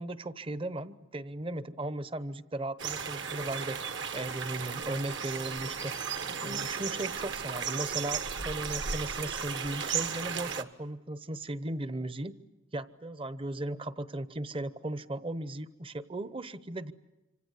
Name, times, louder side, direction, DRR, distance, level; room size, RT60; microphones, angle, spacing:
voice 1, 0.0-3.8 4.1-5.9 6.4-12.3 12.7-16.9, right 1 dB, 25° right, 13 dB, 0.9 m, -37 dB
sound 1, 2.8-10.6, right 6 dB, 60° right, 1.4 m, -35 dB
26.5 x 26.5 x 8.2 m, 1.0 s
head